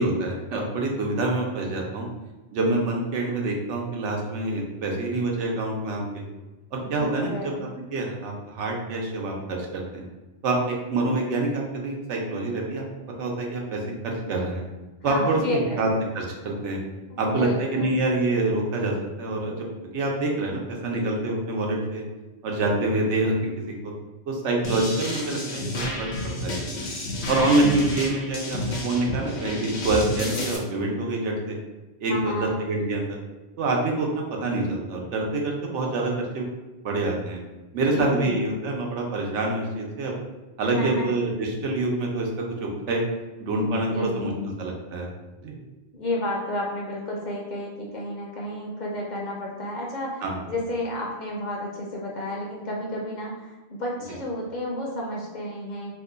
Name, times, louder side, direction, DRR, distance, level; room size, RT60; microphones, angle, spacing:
voice 1, 0.0-2.1 2.5-6.2 6.7-10.1 10.4-12.8 13.2-14.6 15.0-15.9 16.1-16.8 17.2-19.7 19.9-22.0 22.4-23.9 24.3-26.7 27.3-31.5 32.0-32.3 32.6-33.2 33.6-36.5 36.8-37.4 37.7-40.2 40.6-43.0 43.4-44.3 44.6-45.1 45.4-45.6 50.2-50.4, right 2 dB, 85° right, 0 dB, 1.0 m, -26 dB
voice 2, 6.8-7.6 15.0-15.9 17.1-18.0 27.3-27.8 32.1-32.5 37.9-38.5 40.6-41.1 43.7-44.6 45.9-55.9, left 1 dB, 50° left, -3 dB, 0.6 m, -31 dB
sound 1, 24.6-30.6, left 2 dB, 75° left, 1.0 m, -30 dB
2.8 x 2.2 x 3.8 m, 1.1 s
omnidirectional pair, 1.2 m